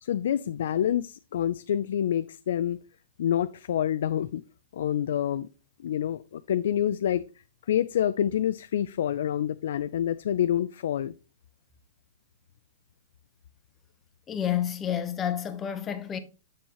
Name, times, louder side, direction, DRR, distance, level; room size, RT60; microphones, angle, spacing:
voice 1, 0.0-2.8 3.2-4.4 4.7-5.5 5.8-7.2 7.7-11.1, left 10 dB, 70° left, 0.4 m, -27 dB
voice 2, 14.3-16.2, left 10 dB, 20° left, 1.0 m, -29 dB
7.3 x 7.2 x 3.0 m
hypercardioid pair, 155°, 0 cm